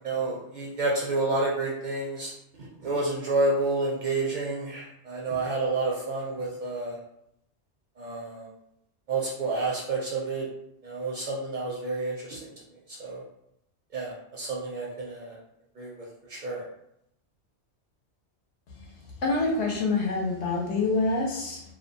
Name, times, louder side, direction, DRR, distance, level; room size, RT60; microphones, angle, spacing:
voice 1, 0.0-2.3 2.8-7.0 8.0-8.5 9.1-10.5 10.8-12.4 12.9-13.2 13.9-15.4 15.8-16.6, right 3 dB, 55° right, -4 dB, 0.5 m, -29 dB
voice 2, 19.2-21.6, left 3 dB, 80° left, -1 dB, 1.0 m, -26 dB
2.7 x 2.2 x 2.5 m, 0.79 s
omnidirectional pair, 1.1 m